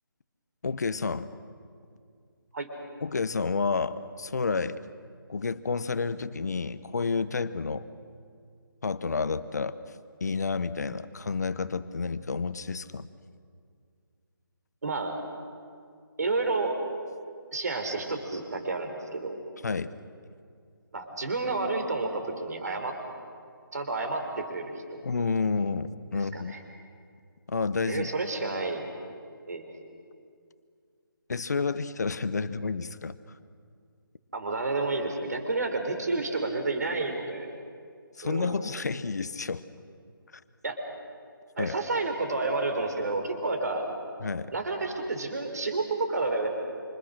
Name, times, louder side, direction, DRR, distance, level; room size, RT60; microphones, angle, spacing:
voice 1, 0.6-1.3 3.0-4.8 5.3-7.9 8.8-9.8 10.2-13.1 19.6-19.9 25.0-26.5 27.5-28.1 31.3-33.2 38.2-39.6 41.6-41.8 44.2-44.5, left 4 dB, 50° left, 14 dB, 0.9 m, -30 dB
voice 2, 14.8-15.2 16.2-16.8 17.5-19.4 20.9-22.9 23.7-25.0 26.1-26.6 27.8-28.9 29.5-29.7 34.3-37.5 38.2-38.6 40.6-40.8 41.6-43.8 44.5-46.5, right 3 dB, 45° right, 4 dB, 3.9 m, -30 dB
27.5 x 26.5 x 6.5 m, 2.3 s
hypercardioid pair, 175°, 12 cm